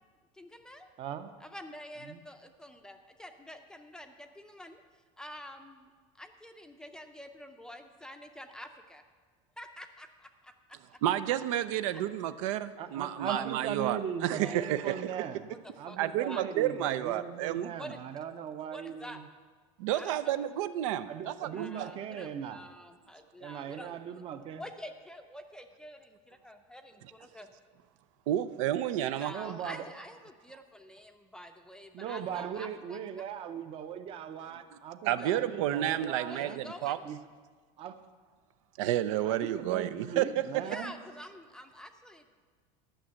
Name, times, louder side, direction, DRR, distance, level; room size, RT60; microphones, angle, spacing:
voice 1, 0.3-0.9 1.4-4.8 5.2-5.9 6.2-9.0 9.6-10.5 11.9-12.0 13.2-13.5 14.4-16.0 16.2-16.4 17.8-18.0 18.7-19.2 19.9-20.4 21.5-24.2 24.5-27.5 29.1-33.0 35.1-35.3 36.3-37.0 40.6-42.4, equal, 5° left, 6 dB, 0.5 m, -47 dB
voice 2, 1.0-1.3 2.1-2.2 12.8-15.5 15.8-19.3 21.1-22.6 23.4-24.6 29.3-29.8 31.9-36.6 37.0-37.2 37.8-38.0 39.2-40.9, right 8 dB, 35° right, 10 dB, 0.7 m, -39 dB
voice 3, 11.0-15.1 16.0-17.7 19.8-21.9 28.3-29.3 35.0-37.0 38.8-40.3, right 12 dB, 85° right, 13 dB, 0.6 m, -31 dB
11.5 x 6.2 x 7.7 m, 1.5 s
cardioid pair, 160°, 16 cm